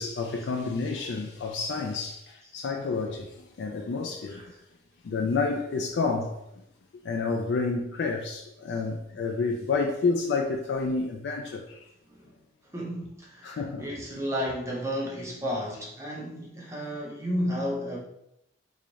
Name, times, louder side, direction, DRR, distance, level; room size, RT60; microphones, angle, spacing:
voice 1, 0.0-4.4 5.0-6.6 7.0-11.9 13.4-13.9, left 4 dB, 65° left, 0.3 m, -29 dB
voice 2, 4.3-4.6 8.7-8.8 12.1-12.4 12.7-18.0, equal, 15° right, 0.6 m, -33 dB
3.1 x 2.4 x 3.9 m
head